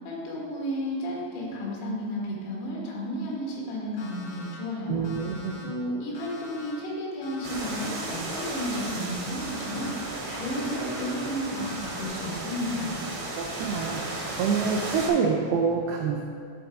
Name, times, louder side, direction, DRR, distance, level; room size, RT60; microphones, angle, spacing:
voice 1, 0.1-5.1 5.6-9.9 10.3-13.0, equal, 80° left, -3 dB, 3.7 m, -32 dB
Alarm, 4.0-4.5 5.0-5.6 6.1-6.7 7.2-7.8 8.3-8.9 9.4-10.0 10.5-11.1 11.6-12.1, left 2 dB, 60° left, 1.7 m, -45 dB
voice 2, 4.9-5.5 13.3-16.2, right 5 dB, 90° right, 0 dB, 2.1 m, -27 dB
sound 1, 7.4-15.1, right 2 dB, 65° right, 1.9 m, -35 dB
10.0 x 3.9 x 4.5 m, 2.2 s
omnidirectional pair, 5.0 m